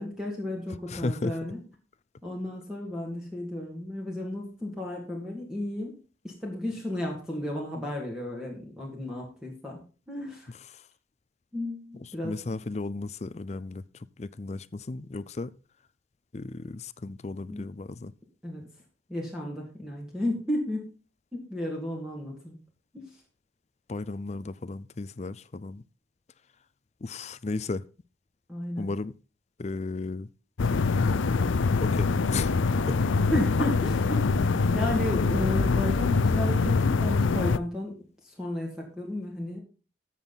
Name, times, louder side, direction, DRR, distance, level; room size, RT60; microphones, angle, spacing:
voice 1, 0.0-1.6 2.2-6.0 6.2-9.8 10.1-10.5 11.5-12.6 17.5-17.7 18.4-18.7 19.1-20.8 21.3-22.6 22.9-23.2 28.5-28.9 33.3-38.0 38.2-39.6, left 1 dB, 5° right, 2.3 m, -33 dB
voice 2, 0.9-1.3 10.7-10.8 12.2-13.8 14.2-15.5 16.3-18.1 23.9-25.8 27.0-27.8 28.8-29.1 29.6-30.3 31.8-32.5 32.9-33.0, left 3 dB, 35° left, 0.5 m, -34 dB
sound 1, 30.6-37.6, left 4 dB, 85° left, 0.5 m, -24 dB
14.0 x 7.4 x 4.1 m
head